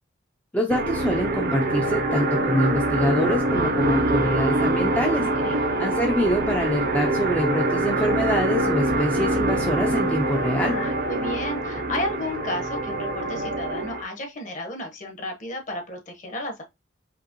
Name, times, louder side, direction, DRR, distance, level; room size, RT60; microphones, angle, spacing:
voice 1, 0.5-10.8, equal, 5° left, 0.6 m, -25 dB
sound 1, 0.7-14.0, right 2 dB, 45° right, 0.7 m, -24 dB
voice 2, 10.7-16.6, left 1 dB, 40° left, 1.2 m, -33 dB
5.1 x 3.1 x 3.0 m
head